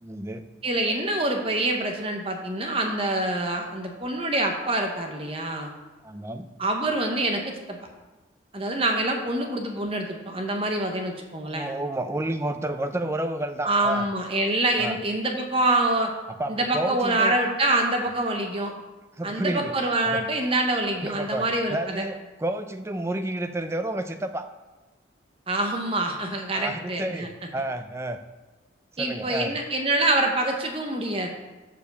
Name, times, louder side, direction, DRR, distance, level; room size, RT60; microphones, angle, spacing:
voice 1, 0.0-0.4 6.0-6.5 11.4-14.1 14.8-15.0 16.3-17.4 19.2-20.2 21.0-24.5 26.5-28.2 29.0-29.5, right 1 dB, 15° right, 8 dB, 0.4 m, -30 dB
voice 2, 0.6-5.7 6.6-7.8 8.5-11.7 13.6-16.1 16.5-18.7 19.2-22.0 25.5-27.3 29.0-31.3, right 2 dB, 30° right, 3 dB, 0.9 m, -26 dB
6.9 x 5.1 x 6.6 m, 1.2 s
head